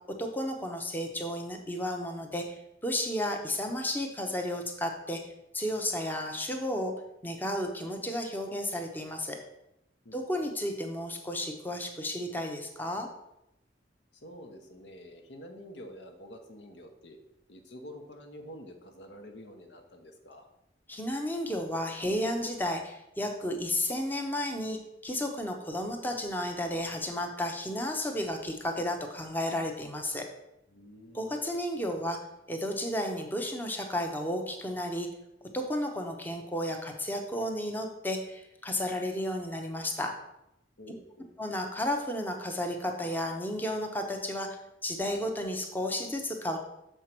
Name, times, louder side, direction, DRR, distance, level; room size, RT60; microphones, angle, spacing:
voice 1, 0.2-5.2 5.5-6.9 7.2-9.4 10.1-13.1 20.9-30.3 31.1-32.2 32.5-35.1 35.5-40.1 41.4-44.5 44.8-46.6, left 1 dB, 10° left, 3 dB, 0.7 m, -33 dB
voice 2, 14.1-17.2 17.5-20.5 30.7-31.4 40.8-41.4, equal, 75° left, 4 dB, 1.1 m, -48 dB
6.7 x 4.5 x 5.9 m, 0.85 s
head